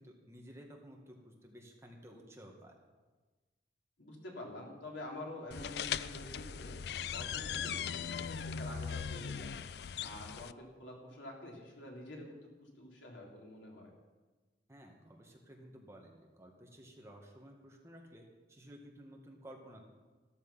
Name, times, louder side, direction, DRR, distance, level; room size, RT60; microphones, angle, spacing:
voice 1, 0.0-2.7 14.7-19.8, equal, 15° right, 0 dB, 1.9 m, -54 dB
voice 2, 4.0-6.7 7.1-9.5 10.0-12.3 12.8-13.8, left 1 dB, 85° left, -1 dB, 3.6 m, -47 dB
sound 1, 5.5-10.5, left 7 dB, 60° left, 0.4 m, -39 dB
14.0 x 13.5 x 5.7 m, 1.3 s
head